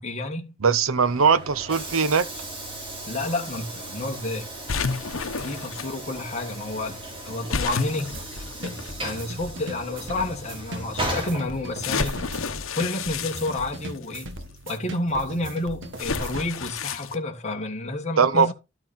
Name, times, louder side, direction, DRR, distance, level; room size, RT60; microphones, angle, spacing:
voice 1, 0.0-0.5 3.1-4.5 5.4-7.0 7.3-8.2 8.6-12.2 12.7-14.3 14.7-18.5, left 2 dB, 35° left, 1.6 m, -30 dB
voice 2, 0.6-2.3 18.2-18.5, right 5 dB, 85° right, 0.8 m, -20 dB
Train / Sliding door, 0.8-12.2, right 1 dB, 25° right, 3.3 m, -37 dB
sound 1, 4.7-5.9 7.5-9.1 9.9-10.0 11.8-14.2 16.0-17.2, left 5 dB, 75° left, 1.0 m, -30 dB
sound 2, 8.1-16.5, right 1 dB, 65° right, 1.5 m, -39 dB
12.5 x 6.1 x 4.2 m
head